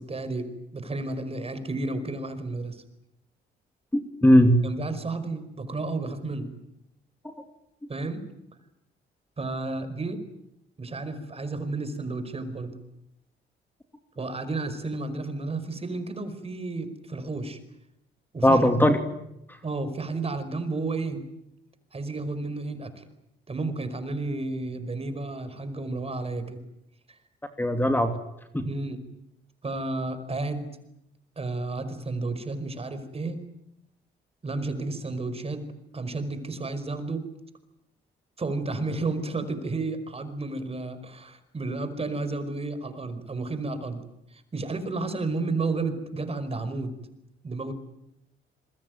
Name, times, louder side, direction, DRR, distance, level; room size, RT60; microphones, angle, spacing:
voice 1, 0.0-2.8 4.6-6.5 7.9-8.2 9.4-10.2 10.8-12.8 14.2-17.6 18.3-18.9 19.6-21.2 21.9-23.0 23.5-26.6 27.1-27.2 28.6-29.0 29.6-30.7 31.4-33.4 34.4-35.6 35.9-37.2 38.4-44.0 44.3-47.0 47.4-47.7, right 3 dB, 30° right, 11 dB, 5.1 m, -32 dB
voice 2, 3.9-4.6 7.2-7.3 18.4-19.0 27.6-28.1 28.5-28.6, equal, 10° left, 7 dB, 2.9 m, -19 dB
28.0 x 21.5 x 9.5 m, 0.83 s
cardioid pair, 90°, 20 cm